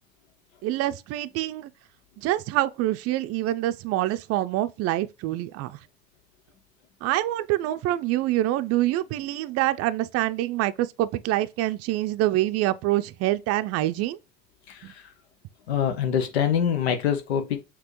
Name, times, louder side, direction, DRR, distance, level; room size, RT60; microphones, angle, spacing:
voice 1, 0.6-1.7 2.2-5.8 7.0-14.2 14.8-14.9, right 15 dB, 50° right, 0.4 m, -26 dB
voice 2, 14.7-15.0 15.7-17.6, left 8 dB, 85° left, 0.7 m, -25 dB
6.0 x 2.9 x 3.1 m
hypercardioid pair, 65°, 31 cm